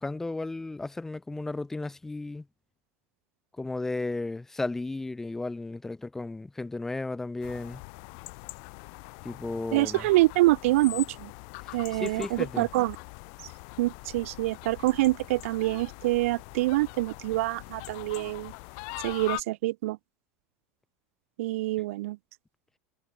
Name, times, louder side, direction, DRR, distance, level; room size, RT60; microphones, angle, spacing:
voice 1, 0.0-2.5 3.6-7.8 9.2-10.1 11.6-12.7, left 2 dB, 5° left, 0.6 m, -34 dB
sound 1, 7.4-19.4, left 40 dB or more, 45° left, 0.7 m, -42 dB
voice 2, 9.7-11.3 11.7-13.0 13.8-18.5 19.0-20.0 21.4-22.2, right 18 dB, 75° right, 0.3 m, -26 dB
supercardioid pair, 175°, 8 cm